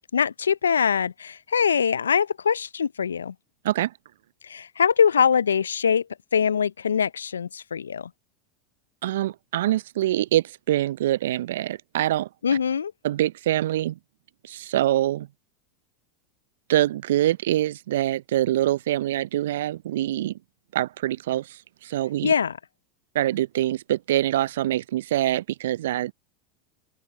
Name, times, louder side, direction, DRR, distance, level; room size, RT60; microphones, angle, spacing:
voice 1, 0.1-3.3 4.5-6.0 6.3-8.1 12.4-12.9 22.2-22.6, left 7 dB, 80° left, 0.7 m, -23 dB
voice 2, 9.0-12.6 13.0-14.0 14.5-15.3 16.7-20.3 20.7-21.5 21.8-22.3 23.1-26.1, right 13 dB, 65° right, 0.6 m, -24 dB
figure-of-eight pair, 85°, 0 cm